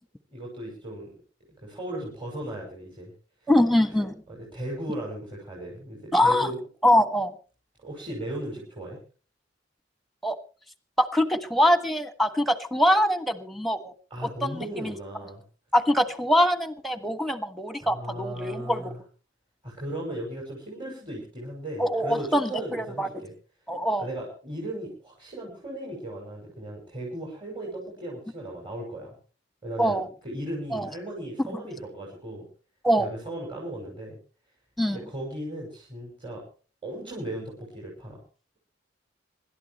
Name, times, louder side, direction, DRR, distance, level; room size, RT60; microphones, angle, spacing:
voice 1, 0.3-1.2 1.6-3.1 3.4-3.5 4.3-6.6 7.8-9.0 14.1-15.4 17.8-19.0 19.6-23.3 24.0-29.1 29.6-32.5 33.0-34.2 34.9-36.4 36.8-38.2, right 1 dB, 25° right, -3 dB, 6.5 m, -36 dB
voice 2, 3.5-4.1 6.1-6.5 6.8-7.3 10.2-10.4 11.0-13.9 14.4-14.9 15.7-18.9 21.8-23.2 23.7-24.1 29.8-30.1 30.7-30.9 31.5-31.6 32.8-33.1 34.8-35.0, equal, ahead, 11 dB, 1.4 m, -23 dB
26.0 x 12.5 x 3.2 m, 0.38 s
head